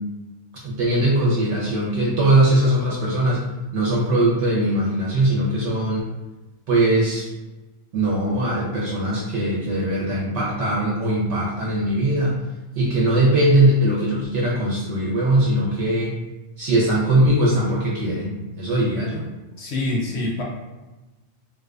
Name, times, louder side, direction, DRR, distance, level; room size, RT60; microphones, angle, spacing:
voice 1, 0.6-3.4 3.7-6.0 6.7-7.3 7.9-12.4 12.8-16.1 16.6-19.3, right 1 dB, 70° right, -5 dB, 0.9 m, -20 dB
voice 2, 19.6-20.4, left 2 dB, 65° left, -2 dB, 0.8 m, -25 dB
2.4 x 2.2 x 2.3 m, 1.1 s
omnidirectional pair, 1.3 m